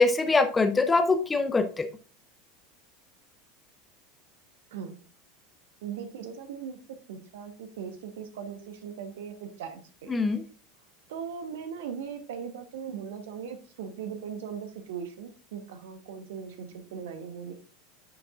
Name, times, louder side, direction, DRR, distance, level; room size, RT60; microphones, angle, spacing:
voice 1, 0.0-1.9 10.1-10.4, left 3 dB, 15° left, 8 dB, 0.8 m, -23 dB
voice 2, 5.8-10.1 11.1-17.5, right 7 dB, 60° right, 8 dB, 1.1 m, -39 dB
10.5 x 7.2 x 2.5 m, 0.38 s
figure-of-eight pair, 80°, 0 cm